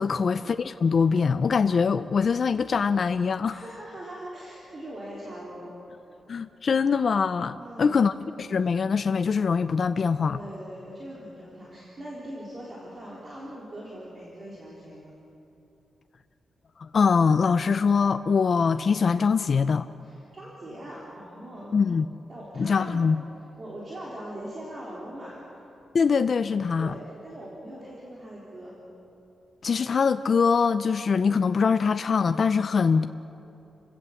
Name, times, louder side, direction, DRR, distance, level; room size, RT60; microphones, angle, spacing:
voice 1, 0.0-3.6 6.3-8.1 8.4-10.4 16.8-19.9 21.7-22.1 22.6-23.3 25.9-27.0 29.6-33.1, left 5 dB, 40° left, 11 dB, 0.4 m, -23 dB
voice 2, 3.5-5.7 7.6-8.0 10.3-15.1 20.0-21.8 22.3-23.0 23.6-25.4 26.8-28.8, right 1 dB, 30° right, -5 dB, 3.4 m, -41 dB
30.0 x 16.5 x 7.1 m, 3.0 s
wide cardioid pair, 180°, 0 cm